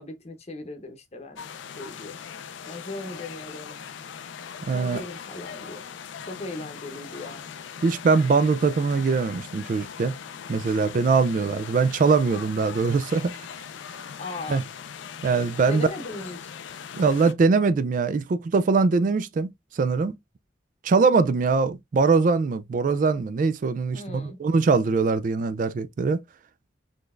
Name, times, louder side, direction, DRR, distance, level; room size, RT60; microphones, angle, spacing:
voice 1, 0.0-1.4 1.8-2.2 2.7-3.9 4.7-5.8 6.2-7.5 14.2-14.7 15.7-16.5 23.9-24.4, left 2 dB, 35° left, 0.8 m, -38 dB
sound 1, 1.4-17.3, left 7 dB, 85° left, 0.4 m, -40 dB
voice 2, 4.7-5.0 7.8-10.1 10.5-13.4 14.5-14.6 15.2-15.9 16.9-20.2 20.8-26.2, right 4 dB, 45° right, 0.3 m, -22 dB
4.0 x 3.2 x 2.4 m
head